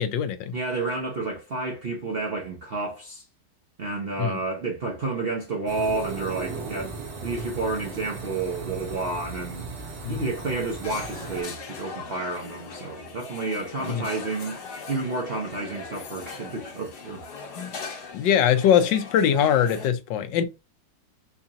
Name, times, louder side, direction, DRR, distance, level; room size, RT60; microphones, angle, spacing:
voice 1, 0.0-0.5 4.2-4.4 10.0-10.2 13.9-14.0 17.6-17.7 18.1-20.5, left 9 dB, 80° left, 1.3 m, -22 dB
voice 2, 0.5-3.2 3.8-9.7 10.1-14.6 14.9-17.5, right 3 dB, 55° right, 0.6 m, -30 dB
sound 1, 5.7-11.4, right 4 dB, 85° right, 1.8 m, -37 dB
sound 2, 10.8-19.9, left 4 dB, 65° left, 1.5 m, -40 dB
4.6 x 2.8 x 2.4 m
omnidirectional pair, 1.9 m